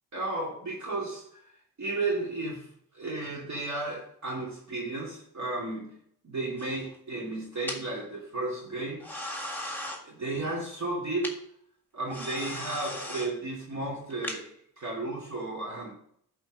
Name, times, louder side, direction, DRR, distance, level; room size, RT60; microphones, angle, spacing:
voice 1, 0.1-1.5 1.8-2.7 2.9-5.9 6.2-9.2 10.0-11.4 11.9-15.9, right 2 dB, 45° right, -5 dB, 2.7 m, -33 dB
sound 1, 6.6-6.9 7.7-7.8 9.0-10.0 11.2-11.3 12.1-13.3 14.1-14.4, left 1 dB, 5° left, 1.8 m, -37 dB
11.0 x 4.4 x 6.5 m, 0.68 s
cardioid pair, 105°, 38 cm